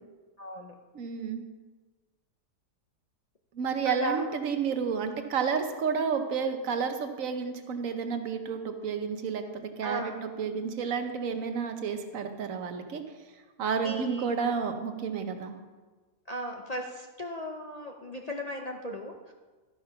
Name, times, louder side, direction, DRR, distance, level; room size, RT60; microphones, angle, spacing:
voice 1, 0.4-0.8 3.8-4.3 9.8-10.2 13.8-14.3 16.3-19.3, equal, 45° left, 1 dB, 0.5 m, -36 dB
voice 2, 0.9-1.4 3.5-13.0 13.6-15.6, right 6 dB, 60° right, 6 dB, 1.2 m, -31 dB
13.0 x 5.9 x 5.7 m, 1.3 s
omnidirectional pair, 1.7 m